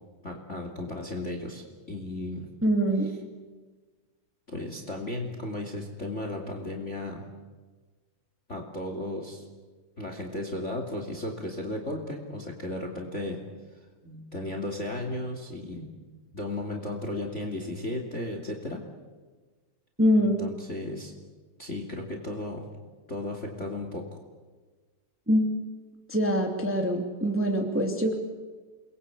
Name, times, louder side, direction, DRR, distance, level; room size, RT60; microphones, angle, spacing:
voice 1, 0.2-1.6 1.9-2.5 4.5-7.2 8.5-9.5 10.0-13.4 14.0-15.9 16.3-18.8 20.2-21.1 21.6-22.6 23.1-24.2, left 1 dB, 25° left, 4 dB, 2.7 m, -35 dB
voice 2, 2.6-3.1 20.0-20.4 25.3-25.5 26.1-28.1, equal, 5° right, 2 dB, 2.3 m, -24 dB
29.5 x 21.5 x 8.2 m, 1.4 s
omnidirectional pair, 3.4 m